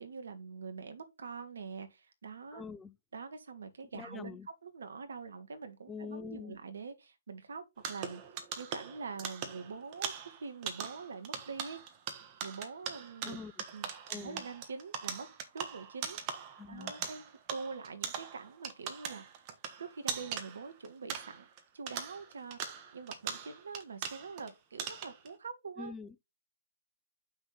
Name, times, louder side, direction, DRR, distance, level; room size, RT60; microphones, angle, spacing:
voice 1, 0.0-2.6 3.1-8.2 8.6-10.1 10.4-11.8 12.4-13.4 13.7-15.3 15.5-16.2 16.7-19.2 19.8-21.5 21.7-25.9, right 5 dB, 65° right, 1.7 m, -44 dB
voice 2, 2.5-2.9 3.9-4.5 5.9-6.6 13.2-13.5 14.1-14.4 16.6-17.1 25.8-26.2, left 5 dB, 10° left, 0.3 m, -44 dB
sound 1, 7.8-21.6 21.9-24.5 24.8-25.3, right 8 dB, 30° right, 1.3 m, -41 dB
7.0 x 6.1 x 4.1 m
figure-of-eight pair, 130°, 0 cm